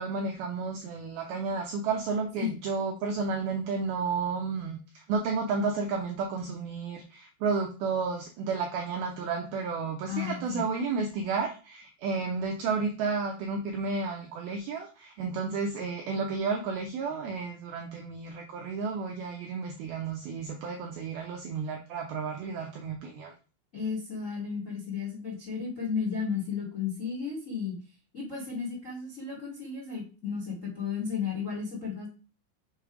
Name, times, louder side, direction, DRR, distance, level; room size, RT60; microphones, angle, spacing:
voice 1, 0.0-23.3, right 4 dB, 90° right, 1 dB, 2.1 m, -32 dB
voice 2, 10.1-10.6 23.7-27.8 28.1-32.1, left 6 dB, 35° left, -3 dB, 1.2 m, -33 dB
7.2 x 3.3 x 4.9 m, 0.35 s
omnidirectional pair, 5.5 m